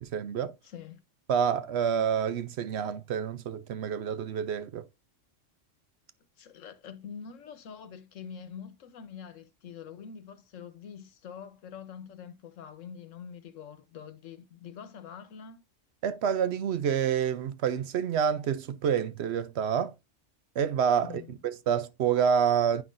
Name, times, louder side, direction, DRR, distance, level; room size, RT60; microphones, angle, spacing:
voice 1, 0.0-0.5 1.3-4.8 16.0-19.9 20.6-22.8, right 8 dB, 65° right, 0.8 m, -28 dB
voice 2, 0.6-1.0 6.4-15.6 21.0-21.4, left 7 dB, 85° left, 1.2 m, -45 dB
9.3 x 5.6 x 2.5 m
omnidirectional pair, 1.3 m